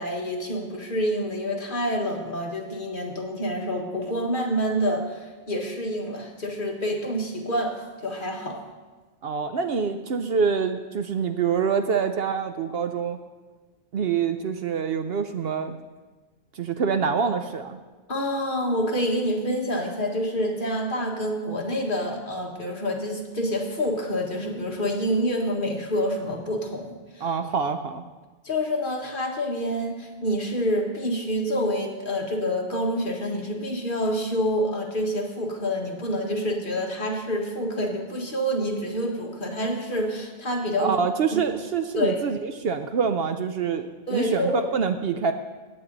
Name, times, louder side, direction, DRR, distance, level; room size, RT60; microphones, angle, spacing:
voice 1, 0.0-8.6 18.1-27.3 28.4-40.9 41.9-42.2 44.1-44.7, equal, 45° left, 0 dB, 1.7 m, -27 dB
voice 2, 9.2-13.2 13.9-15.7 16.5-17.8 27.2-28.0 40.8-45.3, right 6 dB, 60° right, 8 dB, 0.8 m, -26 dB
16.5 x 9.2 x 3.9 m, 1.3 s
omnidirectional pair, 1.2 m